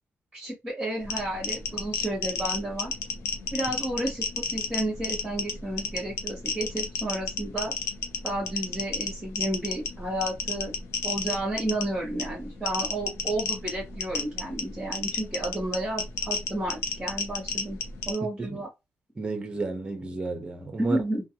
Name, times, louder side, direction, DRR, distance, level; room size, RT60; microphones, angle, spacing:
voice 1, 0.3-2.9 3.5-7.7 8.2-10.7 11.0-17.8 18.1-18.7 20.8-21.2, right 1 dB, 5° right, 1.1 m, -31 dB
sound 1, 1.0-18.2, left 4 dB, 70° left, 0.6 m, -33 dB
voice 2, 19.2-21.0, right 3 dB, 20° right, 0.6 m, -32 dB
2.5 x 2.1 x 2.8 m
cardioid pair, 145°, 5 cm